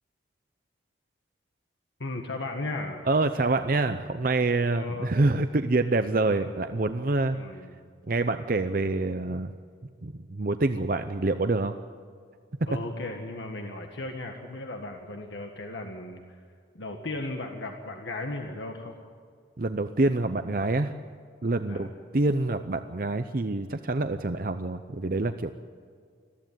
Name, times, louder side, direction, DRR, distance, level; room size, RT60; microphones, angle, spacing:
voice 1, 2.0-3.1 4.7-5.1 6.3-6.5 7.3-7.7 12.7-16.2 16.7-18.9 21.7-21.9, left 2 dB, 75° left, 3 dB, 1.7 m, -36 dB
voice 2, 3.1-7.4 8.1-9.5 10.0-11.7 19.6-20.9 21.4-21.9 22.1-25.5, right 2 dB, 50° right, 9 dB, 0.7 m, -26 dB
21.5 x 14.5 x 9.2 m, 2.1 s
head